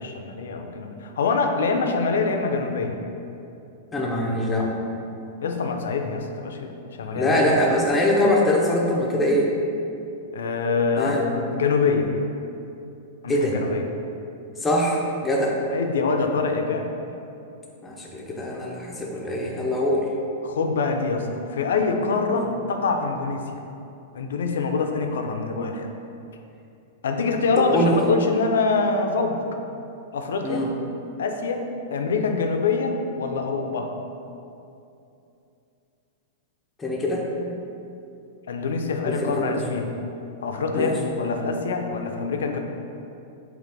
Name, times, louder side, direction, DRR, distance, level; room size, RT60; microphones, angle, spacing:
voice 1, 0.0-3.0 5.4-7.4 10.3-12.1 13.2-13.8 15.4-15.5 15.7-16.9 20.4-23.4 24.1-25.9 27.0-29.4 30.1-30.7 31.2-33.9 38.5-39.9 40.4-42.6, left 4 dB, 90° left, 4 dB, 0.4 m, -25 dB
voice 2, 3.9-4.7 7.1-9.5 11.0-11.2 13.3-13.6 14.6-15.6 17.8-20.1 22.3-22.4 27.5-28.0 30.4-30.7 36.8-37.3 39.0-39.6 40.7-40.9, left 1 dB, 10° left, -2 dB, 0.5 m, -23 dB
4.0 x 2.9 x 3.3 m, 2.8 s
supercardioid pair, 145°, 0 cm